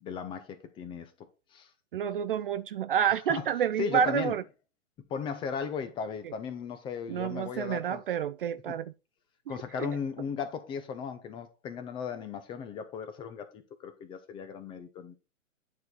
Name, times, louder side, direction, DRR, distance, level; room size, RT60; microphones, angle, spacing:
voice 1, 0.0-1.1 1.5-1.7 3.3-3.4 3.8-4.3 5.1-8.0 8.7-8.8 9.5-15.2, left 6 dB, 10° left, 0.6 m, -36 dB
voice 2, 1.9-4.4 6.2-6.3 7.1-8.9 9.8-9.9, right 9 dB, 45° right, 0.4 m, -29 dB
9.5 x 4.6 x 3.9 m
hypercardioid pair, 130°, 41 cm